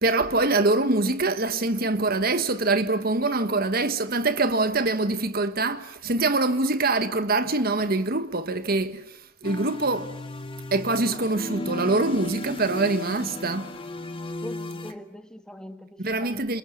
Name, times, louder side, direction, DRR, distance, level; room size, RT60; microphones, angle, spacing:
voice 1, 0.0-10.1 10.7-13.7 16.0-16.6, right 2 dB, 50° right, 1.4 m, -24 dB
sound 1, 9.4-14.9, left 2 dB, 25° left, 1.8 m, -35 dB
voice 2, 14.4-16.6, equal, 5° left, 1.7 m, -42 dB
29.0 x 27.5 x 7.2 m
head